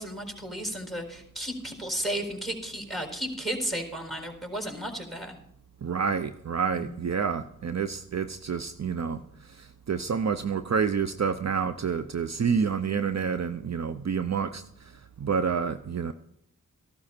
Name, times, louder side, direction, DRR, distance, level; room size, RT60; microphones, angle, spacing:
voice 1, 0.0-5.4 6.7-7.1, right 1 dB, ahead, 4 dB, 4.4 m, -34 dB
voice 2, 5.8-9.2 9.6-14.6 15.2-16.1, right 6 dB, 50° right, 10 dB, 0.7 m, -28 dB
15.0 x 12.5 x 4.4 m, 0.72 s
cardioid pair, 55°, 33 cm